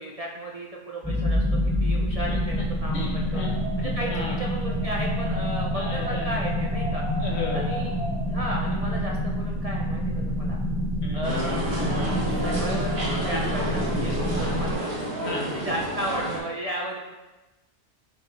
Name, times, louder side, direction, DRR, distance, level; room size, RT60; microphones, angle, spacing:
voice 1, 0.0-2.9 3.3-3.4 3.8-7.0 7.5-7.9 8.3-10.6 11.1-14.9 15.5-17.0, right 1 dB, 40° right, -2 dB, 0.7 m, -34 dB
sound 1, 1.0-14.7, equal, ahead, 1.1 m, -27 dB
voice 2, 2.3-2.7 2.9-3.6 3.8-4.4 5.7-6.4 7.2-7.7 11.0-11.3 14.2-14.6 15.2-15.7, left 2 dB, 65° left, -2 dB, 1.5 m, -34 dB
Wind, 3.1-9.0, right 1 dB, 75° right, 1.7 m, -39 dB
sound 2, 11.2-16.4, right 1 dB, 55° right, 1.8 m, -30 dB
6.8 x 5.6 x 3.3 m, 1.1 s
omnidirectional pair, 1.2 m